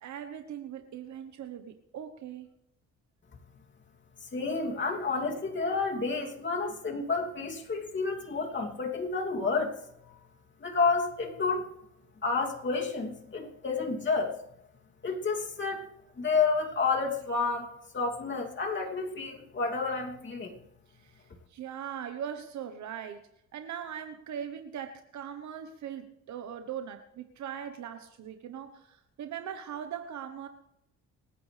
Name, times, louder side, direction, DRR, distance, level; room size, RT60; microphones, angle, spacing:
voice 1, 0.0-2.5 5.9-6.0 20.9-23.2 23.5-30.5, right 9 dB, 70° right, 7 dB, 1.1 m, -40 dB
voice 2, 4.2-9.8 10.0-10.3 10.6-11.7 12.2-14.3 15.0-15.8 16.2-20.5, left 4 dB, 40° left, 0 dB, 2.8 m, -30 dB
27.5 x 9.6 x 3.4 m, 0.84 s
cardioid pair, 90°, 30 cm